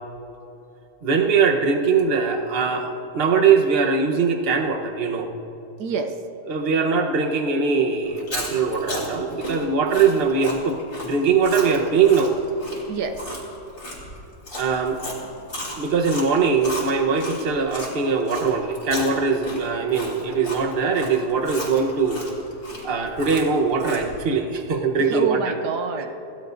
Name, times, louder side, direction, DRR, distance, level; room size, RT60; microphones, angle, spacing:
voice 1, 1.0-5.3 6.5-12.3 14.6-15.0 15.8-22.3 22.8-25.5, right 5 dB, 40° right, 3 dB, 1.1 m, -21 dB
voice 2, 5.8-6.2 12.9-13.4 25.0-26.1, right 5 dB, 75° right, 6 dB, 1.4 m, -27 dB
Chewing mastication, 8.1-17.9 18.3-24.2, left 1 dB, 65° left, 4.6 m, -34 dB
27.5 x 17.5 x 2.6 m, 3.0 s
omnidirectional pair, 1.8 m